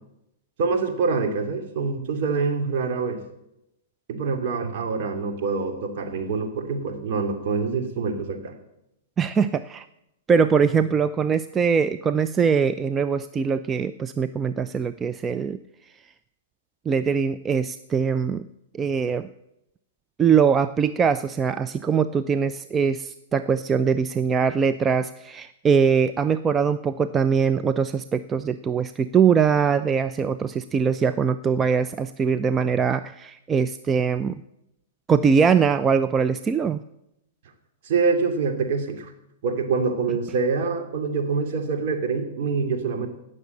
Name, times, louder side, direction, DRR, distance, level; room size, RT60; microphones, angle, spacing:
voice 1, 0.6-3.2 4.1-8.5 37.8-39.1 39.4-43.1, right 4 dB, 55° right, 4 dB, 2.6 m, -25 dB
voice 2, 9.2-9.8 10.3-15.6 16.9-18.4 18.7-19.3 20.2-34.4 35.1-36.8, right 6 dB, 20° right, 11 dB, 0.5 m, -22 dB
17.0 x 6.6 x 8.7 m, 0.85 s
hypercardioid pair, 110°, 0 cm